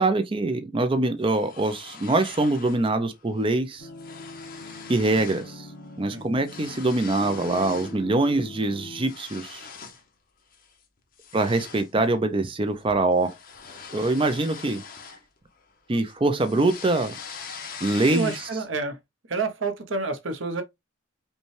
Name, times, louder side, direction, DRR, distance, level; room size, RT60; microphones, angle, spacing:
voice 1, 0.0-3.9 4.9-5.7 6.0-9.7 11.3-13.3 13.9-14.8 15.9-17.2 17.8-18.3, right 2 dB, 25° right, 0.5 m, -24 dB
sound 1, 1.2-2.9 3.2-3.5 3.7-5.5 5.8-8.0 8.4-10.1 10.5-10.7 11.2-15.7 16.0-18.8, left 6 dB, 45° left, 0.9 m, -43 dB
sound 2, 3.8-9.1, left 2 dB, 85° left, 0.9 m, -42 dB
voice 2, 18.1-19.0 19.3-20.6, right 3 dB, 65° right, 0.8 m, -28 dB
5.3 x 2.3 x 3.1 m
head